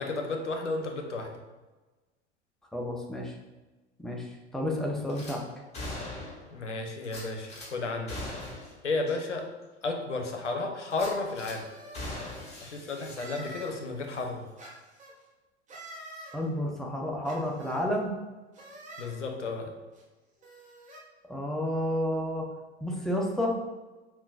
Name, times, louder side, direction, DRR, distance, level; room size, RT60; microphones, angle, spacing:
voice 1, 0.0-1.4 6.5-8.2 8.8-9.5 9.8-11.7 12.6-14.5 19.0-19.7, left 3 dB, 85° left, 4 dB, 0.6 m, -33 dB
voice 2, 2.7-3.3 4.0-4.3 4.5-5.4 16.3-18.1 21.3-22.5 22.8-23.6, left 1 dB, ahead, -1 dB, 0.4 m, -30 dB
Gunshot gunfire / Glass, 5.1-5.4 5.7-6.5 7.0-7.7 8.1-8.7 9.1-9.2 9.6-9.7 10.9-11.6 11.9-13.7 14.1-14.2, left 2 dB, 20° left, 1.5 m, -40 dB
sound 1, 11.5-12.4 13.1-13.8 14.6-15.1 15.7-16.3 17.2-17.8 18.5-19.1 19.9-20.0 20.4-21.0, right 1 dB, 20° right, 0.9 m, -46 dB
5.4 x 2.3 x 2.4 m, 1.2 s
figure-of-eight pair, 80°, 35 cm